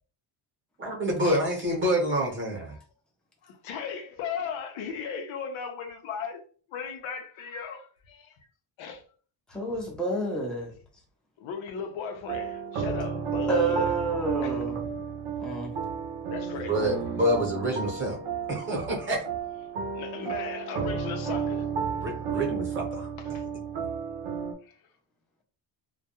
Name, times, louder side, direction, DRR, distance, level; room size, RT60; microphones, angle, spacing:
voice 1, 0.8-2.7 16.6-18.2 18.5-19.2 22.0-23.1, equal, 25° right, 0.9 m, -27 dB
voice 2, 3.4-6.4 6.7-8.4 8.8-9.0 11.4-13.9 14.4-14.6 16.3-16.9 19.9-21.7 23.2-23.4 24.6-24.8, left 6 dB, 85° left, 0.7 m, -37 dB
voice 3, 9.5-10.7 13.5-14.8 15.4-15.8, right 2 dB, ahead, 0.5 m, -29 dB
sound 1, 12.3-24.5, right 6 dB, 90° right, 0.6 m, -32 dB
2.2 x 2.2 x 2.8 m
cardioid pair, 140°, 46 cm